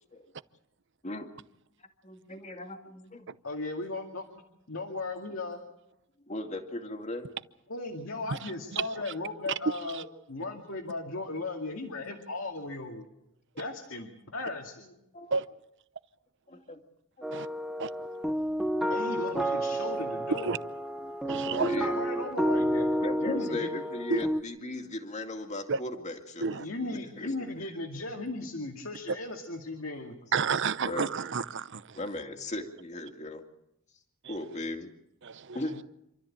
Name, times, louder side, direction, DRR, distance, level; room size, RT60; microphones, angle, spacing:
voice 1, 2.0-3.3 6.3-7.3 15.1-15.4 16.5-16.8 17.2-17.4 21.4-22.0 23.0-26.6 26.9-27.3 30.9-31.1 31.9-33.4 34.3-34.9 35.5-35.8, left 1 dB, 35° left, 2.3 m, -37 dB
voice 2, 3.4-4.2 4.7-5.6 7.7-13.1 13.6-15.0 18.9-20.5 21.6-22.9 23.2-23.7 26.6-30.1, left 2 dB, 75° left, 2.4 m, -36 dB
voice 3, 8.3-9.0 9.9-10.0 15.3-15.4 17.3-17.5 17.8-17.9 20.4-20.6 21.2-21.8 24.1-24.2 25.7-25.8 26.4-26.7 30.3-32.0 34.2-34.3 35.2-35.6, right 5 dB, 60° right, 0.8 m, -31 dB
sound 1, 17.2-24.4, equal, ahead, 1.0 m, -30 dB
27.5 x 13.5 x 8.8 m
head